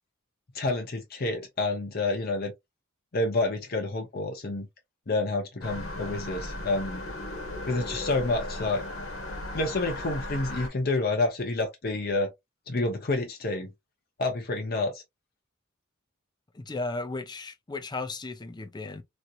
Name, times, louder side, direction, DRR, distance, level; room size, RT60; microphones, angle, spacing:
voice 1, 0.5-2.5 3.1-4.7 5.1-7.0 7.7-8.8 9.5-12.3 12.7-13.7 14.2-15.0, left 2 dB, 50° left, 0.9 m, -28 dB
sound 1, 5.6-10.7, left 1 dB, 75° left, 1.5 m, -36 dB
voice 2, 16.5-19.0, left 3 dB, 20° left, 0.5 m, -35 dB
3.1 x 2.8 x 2.4 m
head